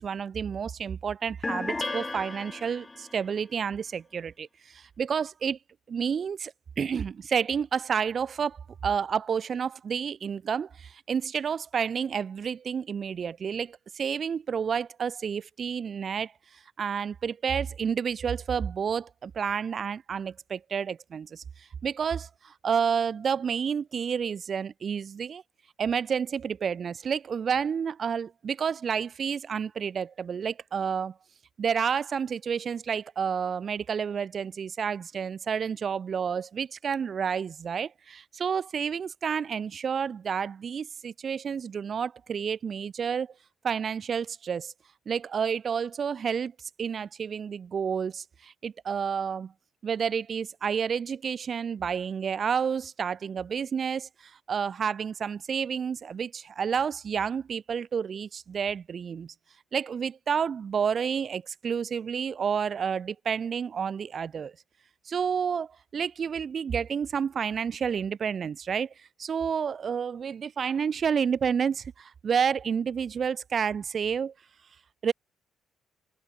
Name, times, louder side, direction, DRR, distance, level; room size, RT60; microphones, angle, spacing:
voice 1, 0.0-5.6 5.9-16.3 16.8-21.4 21.8-25.4 25.8-31.1 31.6-43.3 43.6-44.7 45.1-46.5 46.8-49.5 49.8-54.1 54.5-59.3 59.7-64.5 65.1-68.9 69.2-74.3 75.0-75.1, right 7 dB, 50° right, 1.8 m, -30 dB
sound 1, 1.4-3.2, left 2 dB, 20° left, 0.9 m, -34 dB
cardioid pair, 90°, 0 cm